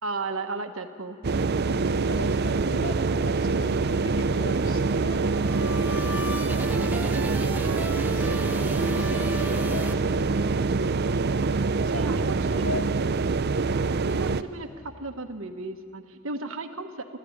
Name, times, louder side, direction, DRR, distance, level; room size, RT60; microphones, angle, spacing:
voice 1, 0.0-1.2 1.8-1.9 11.9-12.9 14.1-17.1, right 3 dB, 65° right, 7 dB, 1.3 m, -35 dB
sound 1, 1.2-14.4, right 4 dB, 50° right, 0.5 m, -25 dB
voice 2, 2.1-6.2 6.6-7.5 8.1-10.6 11.8-13.1, left 2 dB, 70° left, 3 dB, 2.3 m, -40 dB
sound 2, 5.0-10.6, left 1 dB, 10° right, 0.8 m, -36 dB
29.5 x 13.5 x 9.7 m, 2.4 s
head